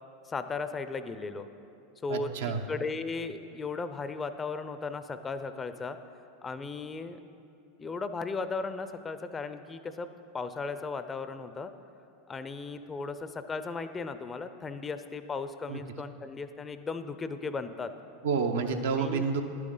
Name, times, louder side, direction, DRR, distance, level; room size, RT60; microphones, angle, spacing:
voice 1, 0.3-1.5 2.0-2.3 2.7-6.0 6.4-7.2 7.8-11.7 12.3-17.9 19.0-19.2, left 4 dB, 20° left, 11 dB, 0.5 m, -36 dB
voice 2, 2.1-2.6 15.7-15.8 18.2-19.4, right 5 dB, 70° right, 5 dB, 0.7 m, -29 dB
11.0 x 7.6 x 3.8 m, 2.6 s
hypercardioid pair, 90°, 0 cm